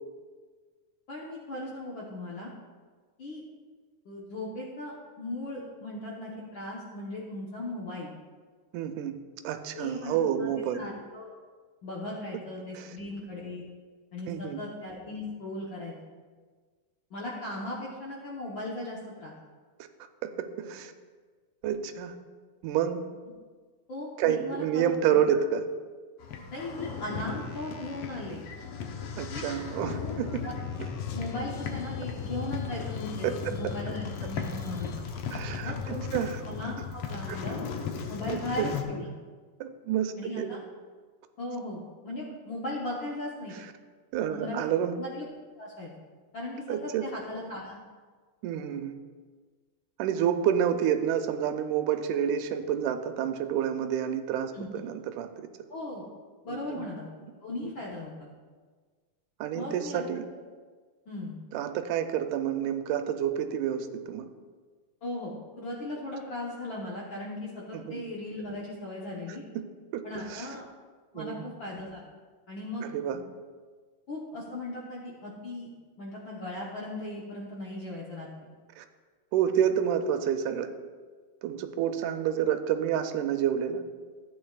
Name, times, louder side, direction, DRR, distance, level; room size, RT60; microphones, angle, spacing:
voice 1, 1.1-2.5 3.2-3.4 4.0-8.1 9.7-11.3 11.8-13.7 14.1-15.9 17.1-19.3 23.9-25.2 26.5-28.4 29.3-29.5 30.4-30.5 31.1-34.9 35.6-37.6 38.1-39.1 40.2-40.6 41.4-43.6 44.3-44.6 45.0-45.2 45.6-45.9 46.3-47.8 54.5-54.7 55.7-56.1 56.4-57.0 57.4-58.1 59.5-60.0 61.1-61.4 65.0-69.4 70.0-70.6 71.1-72.0 72.5-73.2 74.1-75.7 76.0-78.3, left 2 dB, 60° left, -4 dB, 1.3 m, -37 dB
voice 2, 8.7-9.2 9.4-10.8 12.8-12.9 14.3-14.6 20.2-20.9 21.6-22.2 22.6-23.0 24.2-25.7 29.2-30.4 33.2-33.5 35.3-36.4 37.3-37.4 38.3-38.7 39.6-40.6 44.1-45.0 46.7-47.1 48.4-49.0 50.0-55.5 56.5-56.9 57.6-57.7 59.4-60.3 61.5-64.3 67.7-68.0 69.6-69.7 69.9-70.5 71.2-71.5 72.8-73.2 78.8-78.9 79.3-80.7 81.4-83.8, right 9 dB, 85° right, 8 dB, 2.1 m, -29 dB
sound 1, 26.2-38.8, left 6 dB, 80° left, 1.3 m, -36 dB
14.0 x 8.7 x 2.4 m, 1.5 s
omnidirectional pair, 3.6 m